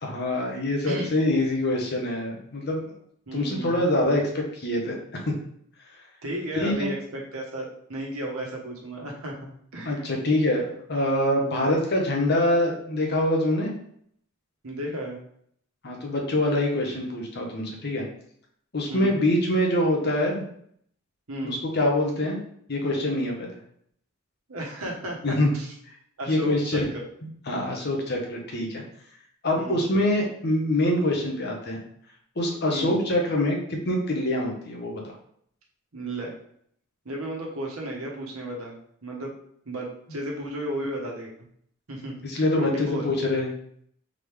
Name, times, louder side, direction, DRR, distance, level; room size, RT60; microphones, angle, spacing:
voice 1, 0.0-2.8 3.3-5.0 5.3-5.4 6.6-6.9 9.8-13.7 15.8-18.0 18.7-20.4 21.4-22.4 22.7-23.6 25.2-25.5 26.3-26.9 27.5-28.8 29.4-31.8 32.4-35.1 42.2-43.5, left 1 dB, 50° left, 0 dB, 0.9 m, -25 dB
voice 2, 3.3-3.8 6.2-10.1 11.5-11.6 14.6-15.2 18.9-19.2 21.3-21.6 24.5-25.7 26.2-27.0 29.6-29.8 32.7-33.0 35.9-36.3 37.0-39.4 39.6-41.3 41.9-42.3 42.6-43.1, right 1 dB, 85° right, -1 dB, 1.2 m, -34 dB
3.8 x 3.3 x 3.4 m, 0.66 s
head